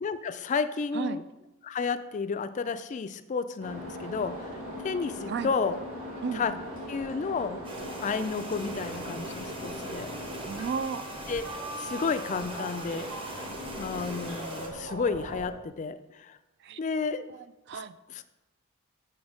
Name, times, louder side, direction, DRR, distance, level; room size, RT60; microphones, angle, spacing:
voice 1, 0.0-1.2 1.6-4.3 4.8-5.8 6.3-6.5 6.9-7.6 8.0-10.1 11.3-11.4 11.8-13.1 13.8-16.4 16.8-17.3 17.7-17.8 18.1-18.2, left 5 dB, 35° left, 12 dB, 0.3 m, -31 dB
voice 2, 0.9-1.3 5.3-5.5 6.2-6.5 10.5-11.1 16.6-16.8 17.3-17.9, right 6 dB, 50° right, 14 dB, 0.3 m, -34 dB
sound 1, 3.6-15.5, equal, 70° right, 3.0 m, -40 dB
sound 2, 7.6-14.7, right 2 dB, 25° right, 0.8 m, -41 dB
6.2 x 6.1 x 4.9 m, 1.0 s
head